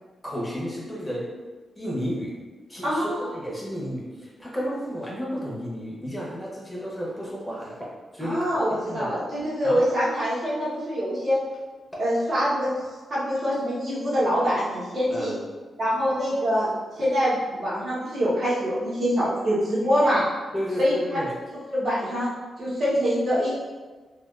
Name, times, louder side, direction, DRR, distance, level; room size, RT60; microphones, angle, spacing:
voice 1, 0.2-1.3 1.8-2.3 2.7-8.5 8.8-9.1 9.6-9.9 15.1-15.4 20.5-21.3, equal, 5° left, -5 dB, 0.7 m, -32 dB
voice 2, 2.8-3.2 8.2-11.4 12.0-15.3 15.8-20.2 20.8-21.2 21.5-23.5, equal, 45° right, -9 dB, 1.0 m, -25 dB
3.4 x 2.4 x 2.4 m, 1.3 s
wide cardioid pair, 135°, 0 cm